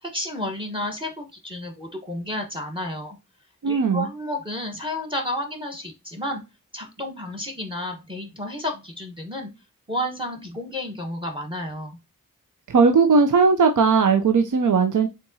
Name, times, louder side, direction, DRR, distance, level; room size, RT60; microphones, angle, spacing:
voice 1, 0.0-3.2 3.6-6.4 6.7-9.5 9.9-12.0, left 1 dB, 15° right, 1.1 m, -31 dB
voice 2, 3.6-4.1 12.7-15.1, right 5 dB, 60° right, 0.6 m, -18 dB
4.4 x 3.8 x 2.7 m
wide cardioid pair, 50°, 34 cm